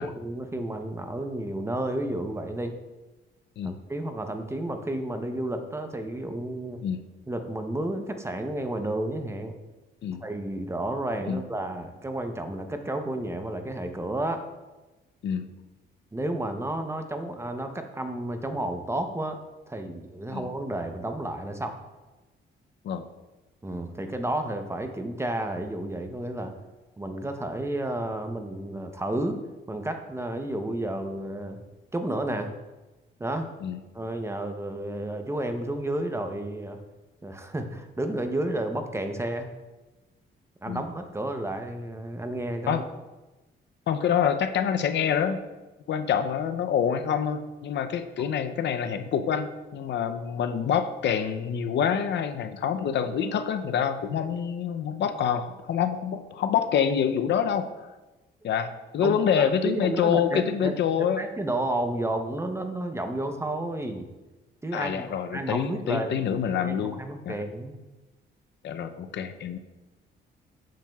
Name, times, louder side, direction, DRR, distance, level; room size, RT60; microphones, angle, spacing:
voice 1, 0.0-2.8 3.6-6.8 7.3-9.5 10.2-14.4 16.1-19.4 19.7-21.8 23.6-26.5 27.0-29.4 29.7-31.6 31.9-32.5 33.2-33.5 33.9-36.8 37.2-39.5 40.6-42.8 59.0-59.2 59.6-64.1 64.6-65.1 65.3-66.2 66.5-67.8, right 1 dB, 15° right, 6 dB, 0.7 m, -31 dB
voice 2, 43.9-45.4 45.9-57.9 58.4-61.2 64.7-67.0 67.3-67.4 68.6-69.6, left 8 dB, 60° left, 8 dB, 0.5 m, -26 dB
7.5 x 7.1 x 2.3 m, 1.1 s
cardioid pair, 90°, 20 cm